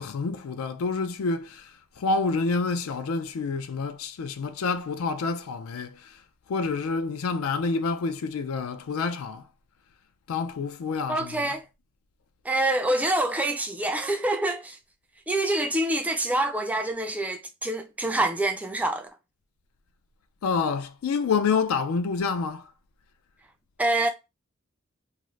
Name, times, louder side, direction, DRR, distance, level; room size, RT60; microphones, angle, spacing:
voice 1, 0.0-1.7 2.0-6.1 6.5-9.4 10.3-11.5 20.4-22.6, left 4 dB, 80° left, 0.4 m, -28 dB
voice 2, 11.1-11.6 12.4-14.8 15.3-19.1 23.8-24.1, right 1 dB, 5° right, 0.3 m, -26 dB
2.5 x 2.5 x 3.1 m
head